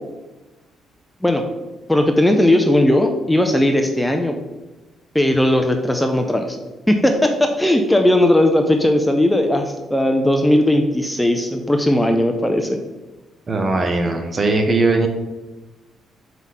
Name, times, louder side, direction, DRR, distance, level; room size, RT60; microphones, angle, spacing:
voice 1, 1.9-4.4 5.1-6.6 6.9-12.8, left 1 dB, 5° left, 4 dB, 0.6 m, -17 dB
voice 2, 13.5-15.1, right 3 dB, 35° right, 5 dB, 1.0 m, -19 dB
4.8 x 3.9 x 5.6 m, 1.1 s
cardioid pair, 90°, 0 cm